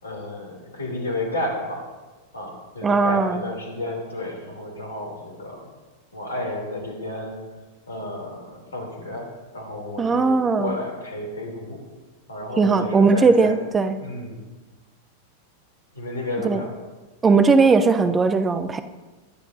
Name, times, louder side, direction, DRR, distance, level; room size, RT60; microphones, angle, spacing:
voice 1, 0.0-1.8 2.3-5.7 6.1-7.4 7.9-11.8 12.3-13.6 14.0-14.4 15.9-16.7, left 1 dB, 75° left, 1 dB, 3.1 m, -31 dB
voice 2, 2.8-3.4 10.0-10.8 12.6-13.9 16.4-16.7 17.2-18.8, right 4 dB, 20° right, 10 dB, 0.7 m, -18 dB
22.0 x 10.5 x 2.7 m, 1.2 s
figure-of-eight pair, 90°, 0 cm